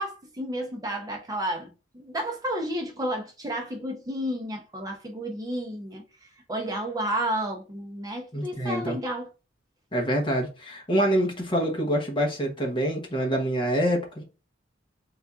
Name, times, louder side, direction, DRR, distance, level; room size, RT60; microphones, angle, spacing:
voice 1, 0.0-6.0 6.5-9.3, right 1 dB, 20° right, 0.7 m, -31 dB
voice 2, 8.3-9.0 9.9-14.2, equal, 25° left, 1.0 m, -26 dB
4.1 x 3.6 x 2.4 m
head